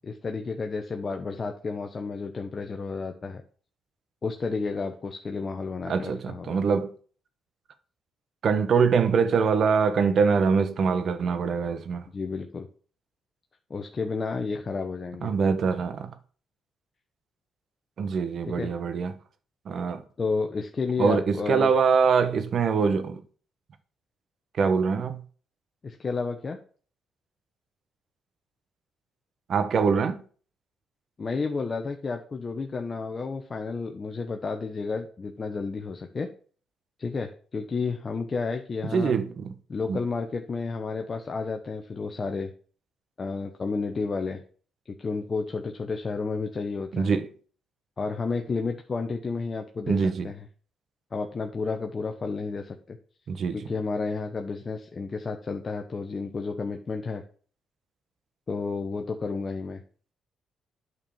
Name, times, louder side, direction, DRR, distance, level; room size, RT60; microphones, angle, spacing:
voice 1, 0.0-3.4 4.2-6.6 12.1-12.7 13.7-15.3 18.5-18.7 20.2-21.7 25.8-26.6 31.2-36.3 37.0-39.1 39.7-42.5 43.2-44.4 45.0-47.1 48.0-50.4 51.1-53.0 53.5-57.2 58.5-59.8, left 4 dB, 35° left, 1.0 m, -31 dB
voice 2, 5.9-6.9 8.4-12.0 15.2-16.1 18.0-19.1 19.7-20.0 21.0-23.2 24.6-25.2 29.5-30.2 38.9-39.5 39.9-40.0 46.9-47.3 49.9-50.3 53.3-53.6, right 5 dB, 55° right, 1.2 m, -24 dB
8.7 x 4.7 x 7.2 m
cardioid pair, 90°, 0 cm